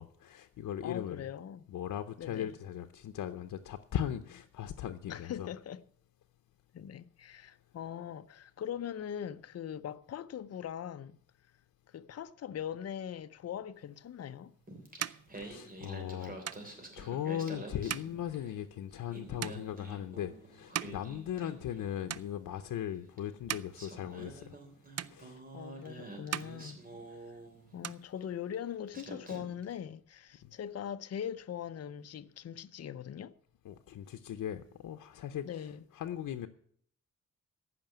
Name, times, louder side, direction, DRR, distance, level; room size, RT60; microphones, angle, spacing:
voice 1, 0.0-1.3 1.7-5.5 15.4-24.6 25.0-25.4 30.4-30.5 33.6-35.7 35.9-36.5, left 10 dB, 90° left, 0.7 m, -38 dB
voice 2, 0.8-1.6 2.2-2.6 5.1-5.8 6.7-11.2 11.9-14.5 21.4-21.5 25.5-26.8 27.3-27.4 27.7-33.3 35.4-35.8, left 9 dB, 50° left, 0.6 m, -41 dB
sound 1, 14.1-21.8 22.1-22.8 23.2-24.7 25.0-25.8 26.1-27.4 27.6-28.8, right 10 dB, 55° right, 0.5 m, -43 dB
Singing, 14.7-18.6 18.9-22.2 23.2-23.3 23.7-27.9 28.5-28.7 28.9-29.7, right 2 dB, 25° right, 3.3 m, -48 dB
14.5 x 5.9 x 8.9 m
cardioid pair, 105°, 32 cm